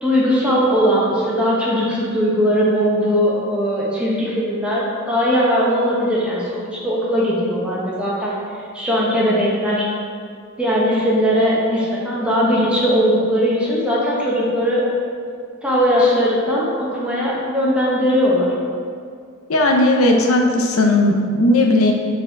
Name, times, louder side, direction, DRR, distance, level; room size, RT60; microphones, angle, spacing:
voice 1, 0.0-8.4 8.7-9.9 10.6-14.8 15.6-18.5, equal, 5° right, -6 dB, 1.0 m, -19 dB
voice 2, 19.5-21.9, left 2 dB, 85° left, 2 dB, 0.7 m, -16 dB
4.9 x 4.2 x 4.5 m, 2.2 s
head